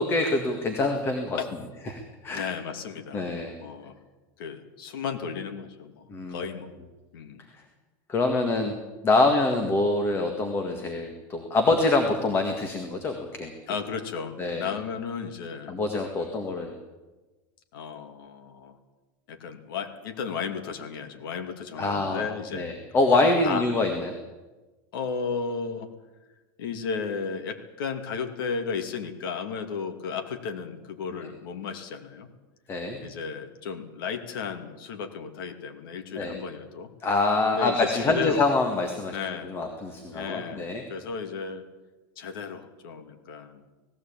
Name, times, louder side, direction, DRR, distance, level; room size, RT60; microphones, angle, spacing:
voice 1, 0.0-1.4 1.9-2.5 3.1-3.5 6.1-6.4 8.1-8.7 9.0-13.5 14.4-14.7 15.7-16.7 21.8-22.3 22.5-24.1 32.7-33.0 36.2-36.4 37.0-39.2 39.4-40.8, left 2 dB, 20° left, 4 dB, 1.8 m, -25 dB
voice 2, 2.3-3.2 3.6-4.0 4.4-6.7 7.1-7.4 13.7-15.8 17.7-18.8 19.3-22.7 23.4-23.7 24.9-25.9 26.6-32.3 33.0-36.9 37.5-38.4 39.1-39.5 40.1-41.6 42.2-43.6, left 6 dB, 90° left, 6 dB, 2.6 m, -34 dB
18.0 x 16.0 x 8.8 m, 1.2 s
supercardioid pair, 170°, 12 cm